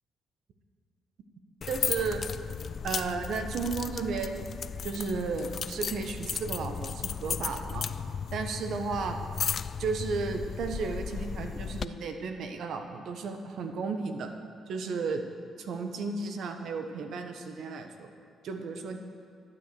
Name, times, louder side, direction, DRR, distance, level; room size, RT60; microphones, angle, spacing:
sound 1, 1.6-11.9, left 6 dB, 50° left, 0.3 m, -35 dB
voice 1, 1.7-2.2 2.8-4.5 4.8-7.9 8.3-9.2 9.8-14.3 14.7-15.2 15.6-18.1 18.4-19.0, right 4 dB, 70° right, 6 dB, 1.1 m, -33 dB
12.0 x 8.5 x 6.9 m, 2.3 s
cardioid pair, 90°, 0 cm